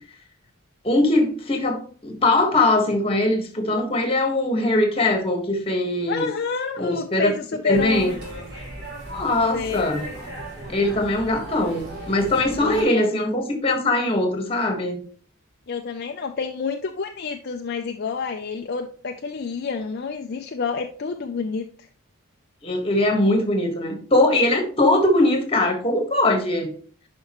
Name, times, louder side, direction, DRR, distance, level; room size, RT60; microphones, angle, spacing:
voice 1, 0.8-6.3 6.8-7.3 7.6-8.1 9.1-10.0 10.7-15.0 22.6-26.7, left 2 dB, 25° left, 5 dB, 1.5 m, -21 dB
voice 2, 6.1-8.2 9.5-9.9 12.6-13.1 15.7-21.7, left 5 dB, 50° left, 5 dB, 0.5 m, -28 dB
sound 1, 7.7-12.8, right 1 dB, 50° right, 3.6 m, -37 dB
10.5 x 5.3 x 3.0 m, 0.42 s
head